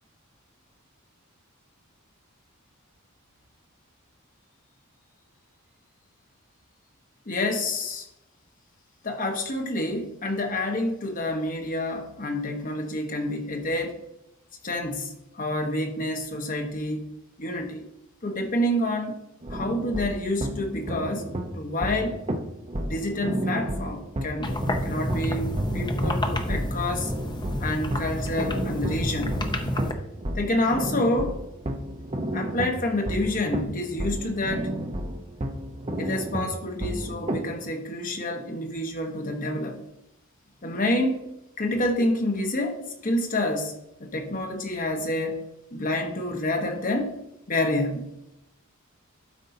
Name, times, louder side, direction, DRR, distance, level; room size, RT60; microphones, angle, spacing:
voice 1, 7.3-8.1 9.0-14.0 14.6-17.0 17.4-17.8 18.2-19.2 19.5-22.2 22.8-24.5 24.8-27.1 27.6-29.4 30.3-31.4 32.3-34.8 36.0-39.8 40.6-41.2 41.6-45.4 45.7-47.2 47.5-48.1, left 1 dB, 40° left, 3 dB, 1.2 m, -28 dB
sound 1, 19.4-37.4, right 1 dB, 30° right, 0.8 m, -32 dB
sound 2, 24.4-29.9, left 1 dB, 20° left, 0.7 m, -29 dB
12.0 x 5.3 x 2.8 m, 0.84 s
head